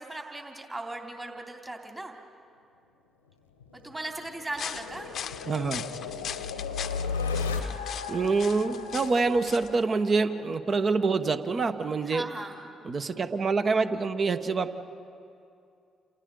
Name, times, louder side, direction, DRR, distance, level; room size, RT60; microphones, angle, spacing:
voice 1, 0.0-2.1 3.7-5.1 12.1-12.7, right 2 dB, 20° right, 1 dB, 3.0 m, -38 dB
sound 1, 3.6-10.4, left 5 dB, 90° left, 1.0 m, -35 dB
sound 2, 4.5-9.8, left 9 dB, 55° left, 0.7 m, -40 dB
voice 2, 5.5-5.9 8.1-12.2 12.8-14.8, right 4 dB, 45° right, 9 dB, 1.1 m, -26 dB
29.5 x 28.5 x 3.9 m, 2.5 s
figure-of-eight pair, 45°, 0 cm